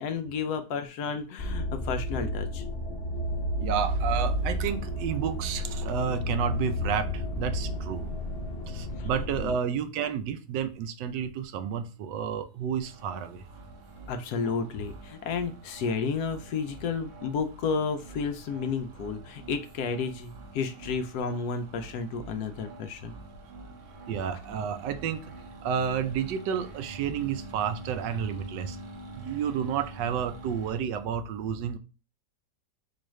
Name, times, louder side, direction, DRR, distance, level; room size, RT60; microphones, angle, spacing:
voice 1, 0.0-2.6 9.0-9.1 9.4-9.5 14.1-23.2, left 5 dB, 75° left, 1.0 m, -32 dB
sound 1, 1.4-9.5, equal, 45° left, 0.9 m, -31 dB
voice 2, 3.6-8.0 8.7-13.4 24.1-25.3 25.6-28.8 29.1-31.8, right 8 dB, 85° right, 1.2 m, -31 dB
sound 2, 12.8-30.8, right 2 dB, 60° right, 0.9 m, -46 dB
4.6 x 2.4 x 3.0 m
omnidirectional pair, 1.9 m